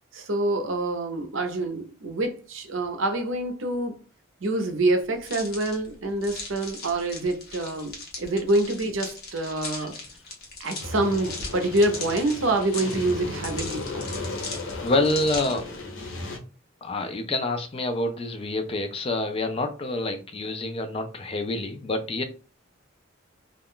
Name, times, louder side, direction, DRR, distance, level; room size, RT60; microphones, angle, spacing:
voice 1, 0.1-4.0 4.4-10.0 10.6-14.1, right 2 dB, 75° right, 0.7 m, -26 dB
sound 1, 5.2-15.7, left 3 dB, 50° left, 0.9 m, -39 dB
sound 2, 10.8-16.4, left 2 dB, 85° left, 0.7 m, -35 dB
voice 2, 14.5-15.7 16.8-22.2, left 2 dB, 30° left, 0.4 m, -27 dB
2.4 x 2.2 x 3.6 m
head